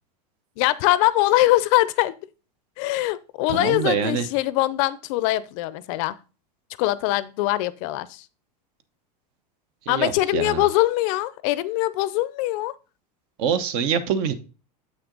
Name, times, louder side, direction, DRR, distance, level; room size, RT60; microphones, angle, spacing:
voice 1, 0.6-2.2 2.8-6.2 6.8-8.3 9.9-12.7, left 16 dB, 55° left, 0.5 m, -22 dB
voice 2, 3.5-4.3 9.8-10.7 13.4-14.3, right 7 dB, 50° right, 1.0 m, -25 dB
7.7 x 6.0 x 3.8 m
supercardioid pair, 140°, 21 cm